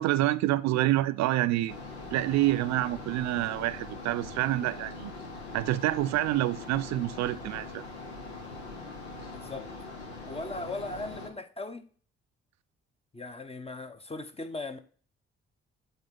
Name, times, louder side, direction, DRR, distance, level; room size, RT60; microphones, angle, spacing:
voice 1, 0.0-1.8 2.1-5.1 5.5-7.8, right 15 dB, 60° right, 0.4 m, -27 dB
sound 1, 1.7-11.3, left 3 dB, 90° left, 0.9 m, -42 dB
voice 2, 9.3-9.7 10.2-11.9 13.1-14.8, left 2 dB, 20° left, 1.0 m, -38 dB
7.8 x 4.3 x 3.7 m
hypercardioid pair, 40°, 32 cm